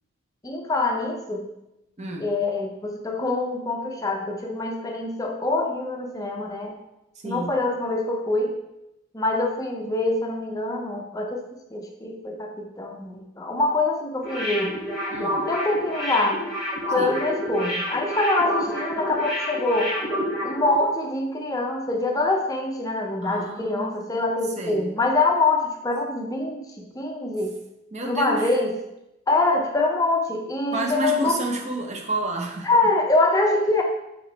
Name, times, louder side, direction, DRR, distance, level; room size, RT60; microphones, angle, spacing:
voice 1, 0.4-1.5 2.2-6.8 7.2-8.6 9.1-14.8 15.5-16.4 16.9-20.0 20.4-27.6 28.0-28.8 29.3-31.4 32.6-33.8, left 2 dB, 15° left, 2 dB, 0.5 m, -24 dB
voice 2, 2.0-2.3 7.2-7.6 15.1-15.4 17.0-17.1 23.2-23.9 24.6-24.8 27.9-28.6 30.7-32.7, right 2 dB, 35° right, 1 dB, 0.6 m, -29 dB
sound 1, 14.2-20.9 21.1-21.3, equal, ahead, 1.5 m, -28 dB
5.3 x 3.0 x 3.2 m, 0.89 s
head